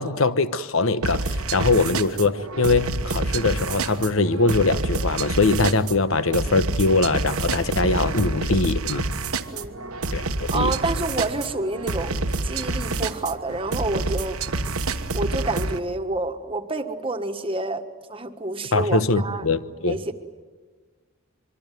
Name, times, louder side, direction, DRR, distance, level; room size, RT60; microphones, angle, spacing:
voice 1, 0.0-9.1 10.1-10.7 18.7-20.0, left 3 dB, 65° left, 1.1 m, -22 dB
sound 1, 1.0-15.8, right 3 dB, 80° right, 1.3 m, -28 dB
voice 2, 9.5-9.9 10.5-14.4 15.1-17.8 18.1-19.5 19.9-20.1, right 2 dB, 25° right, 1.5 m, -28 dB
25.0 x 24.0 x 9.3 m
head